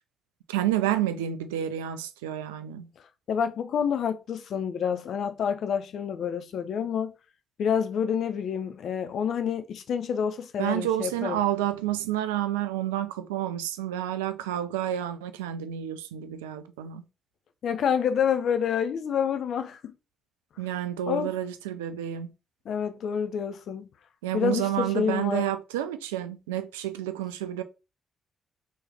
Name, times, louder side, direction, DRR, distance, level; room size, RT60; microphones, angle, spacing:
voice 1, 0.5-2.9 10.6-17.0 20.6-22.3 24.2-27.6, right 12 dB, 85° right, 0.3 m, -29 dB
voice 2, 3.3-7.1 7.6-11.4 17.6-19.8 21.1-21.3 22.7-23.9 24.3-25.5, left 7 dB, 60° left, 0.4 m, -28 dB
3.0 x 2.8 x 3.4 m
hypercardioid pair, 40°, 0 cm